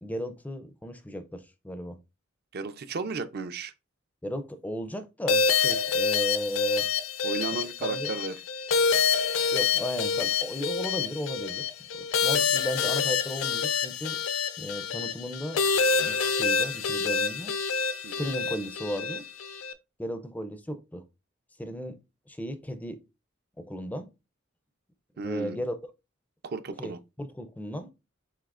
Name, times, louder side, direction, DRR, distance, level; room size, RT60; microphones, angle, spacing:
voice 1, 0.0-2.0 4.2-6.9 7.8-8.1 9.5-11.7 12.2-14.2 14.6-15.7 16.0-17.6 18.0-19.3 20.0-21.0 21.6-22.0 22.3-23.0 23.6-24.1 25.2-25.7 26.8-26.9 27.2-27.9, equal, 10° left, 0.4 m, -35 dB
voice 2, 2.5-3.7 7.2-8.4 18.0-18.3 25.2-25.6 26.4-27.0, right 4 dB, 50° right, 0.5 m, -34 dB
sound 1, 5.3-19.7, left 5 dB, 70° left, 0.5 m, -27 dB
7.4 x 2.8 x 2.4 m
head